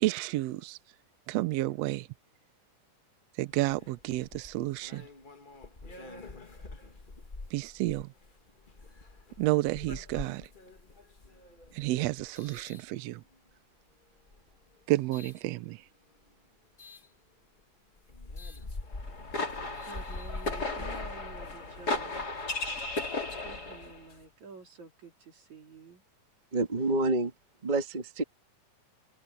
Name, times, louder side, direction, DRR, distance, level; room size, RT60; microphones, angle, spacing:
voice 1, 0.0-0.8 1.3-2.1 3.4-5.0 7.5-8.1 9.4-10.5 11.7-13.2 14.9-15.8, right 17 dB, 85° right, 1.4 m, -30 dB
sound 1, 3.5-13.5 14.2-15.4 16.8-17.1 17.6-17.7 18.0-22.1, left 3 dB, 65° left, 0.5 m, -45 dB
sound 2, 18.9-24.0, left 2 dB, 30° left, 3.4 m, -35 dB
voice 2, 19.8-22.3 23.4-26.0, right 5 dB, 60° right, 5.3 m, -50 dB
voice 3, 26.5-27.3 27.6-28.2, right 2 dB, 20° right, 1.1 m, -28 dB
omnidirectional pair, 3.7 m